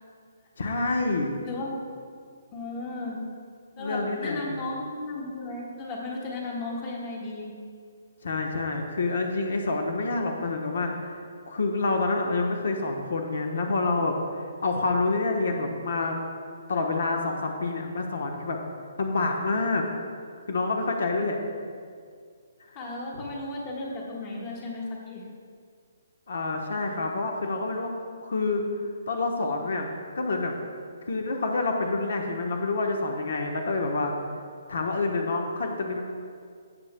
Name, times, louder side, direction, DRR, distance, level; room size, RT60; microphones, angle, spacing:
voice 1, 0.6-1.4 3.7-4.6 8.2-11.2 11.5-16.2 16.7-18.6 19.0-19.8 20.5-21.4 22.7-22.8 23.1-23.2 26.3-27.9 28.2-28.6 29.1-30.5 31.0-34.1 34.7-36.0, left 3 dB, 65° left, 2 dB, 1.0 m, -27 dB
voice 2, 1.4-1.8 2.5-3.2 3.8-7.5 22.7-25.2, left 2 dB, 20° left, -3 dB, 1.5 m, -35 dB
15.0 x 7.8 x 2.2 m, 2.1 s
hypercardioid pair, 170°, 0 cm